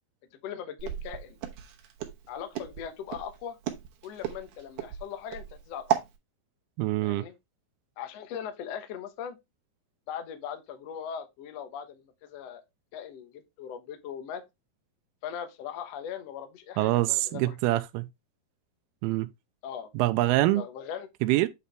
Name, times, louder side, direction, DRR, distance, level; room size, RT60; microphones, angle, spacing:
voice 1, 0.4-1.4 2.3-3.6 4.0-5.9 7.0-7.3 8.0-9.4 10.1-12.6 12.9-14.4 15.2-17.5 19.6-19.9 20.5-21.1, left 8 dB, 85° left, 1.4 m, -39 dB
Walk footsteps, 0.8-6.1, right 10 dB, 70° right, 2.4 m, -34 dB
voice 2, 6.8-7.2 16.8-18.1 19.0-19.3 20.0-20.6 21.2-21.5, right 17 dB, 85° right, 2.4 m, -25 dB
8.5 x 4.2 x 3.3 m
omnidirectional pair, 4.4 m